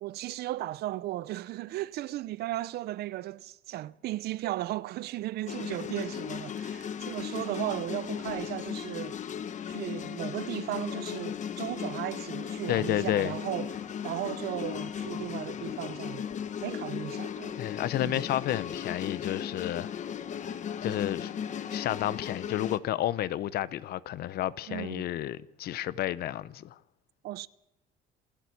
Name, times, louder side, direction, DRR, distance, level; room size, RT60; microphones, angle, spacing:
voice 1, 0.0-9.2 9.7-16.3 16.6-17.6 18.0-18.2 24.7-25.0 27.2-27.5, right 15 dB, 70° right, 0.7 m, -36 dB
sound 1, 5.5-22.8, left 8 dB, 45° left, 1.1 m, -36 dB
voice 2, 12.7-13.3 17.6-19.9 20.8-21.3 21.7-26.7, left 13 dB, 70° left, 0.8 m, -31 dB
27.5 x 12.0 x 8.5 m
cardioid pair, 110°, 17 cm